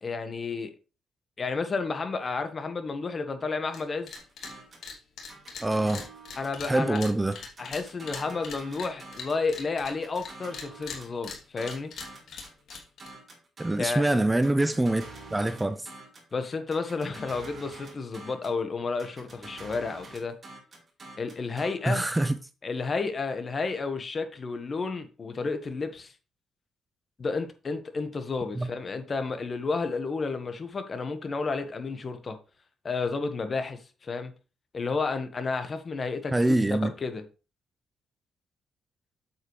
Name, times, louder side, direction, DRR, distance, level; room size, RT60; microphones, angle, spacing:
voice 1, 0.0-0.7 1.4-4.1 6.4-7.0 7.6-11.9 13.8-14.0 16.3-20.3 21.2-22.0 22.6-26.1 27.2-32.4 32.8-34.3 34.7-37.2, left 4 dB, 35° left, 1.5 m, -31 dB
sound 1, 3.7-3.8 4.1-4.5 4.8-10.3 10.5-13.1, left 5 dB, 65° left, 2.8 m, -41 dB
sound 2, 4.1-4.9 5.3-7.2 7.6-9.5 9.9-14.0 14.4-16.3 16.7-18.6 19.0-22.3, right 2 dB, 35° right, 4.0 m, -47 dB
voice 2, 5.6-6.1 6.7-7.4 13.6-15.0 15.3-15.9 21.9-22.4 28.6-28.7 36.3-36.9, right 2 dB, 15° right, 0.6 m, -24 dB
8.1 x 7.9 x 3.3 m
cardioid pair, 90°, 0 cm